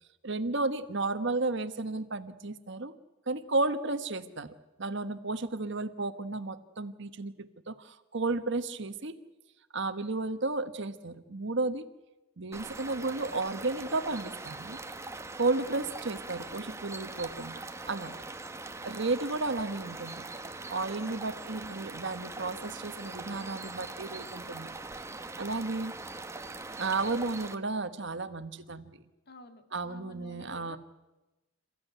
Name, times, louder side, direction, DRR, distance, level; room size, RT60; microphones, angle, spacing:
voice 1, 0.2-2.9 3.3-4.5 4.8-9.1 9.7-11.8 12.4-14.8 15.4-18.1 18.8-20.2 20.7-24.7 25.4-25.9 26.7-29.0 29.7-30.8, right 3 dB, 60° right, 10 dB, 1.3 m, -33 dB
sound 1, 12.5-27.5, right 3 dB, 15° right, 1.0 m, -42 dB
voice 2, 29.3-30.8, left 2 dB, 50° left, 7 dB, 2.1 m, -51 dB
27.5 x 15.0 x 9.4 m, 1.1 s
head